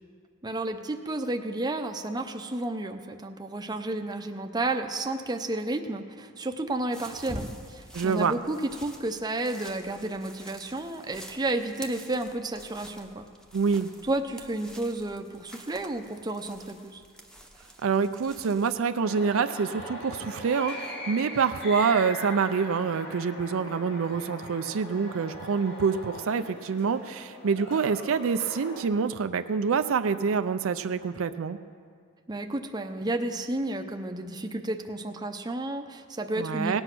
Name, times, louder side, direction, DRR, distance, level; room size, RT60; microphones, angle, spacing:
voice 1, 0.4-13.3 14.0-17.0 32.3-36.8, right 2 dB, 20° right, 5 dB, 0.6 m, -32 dB
sound 1, 6.9-18.8, equal, 5° left, 0.9 m, -47 dB
voice 2, 7.9-8.3 13.5-13.9 17.8-31.6 36.4-36.8, right 5 dB, 65° right, 9 dB, 0.4 m, -26 dB
sound 2, 19.0-28.8, left 1 dB, 50° left, 2.2 m, -40 dB
18.0 x 8.0 x 6.0 m, 2.1 s
head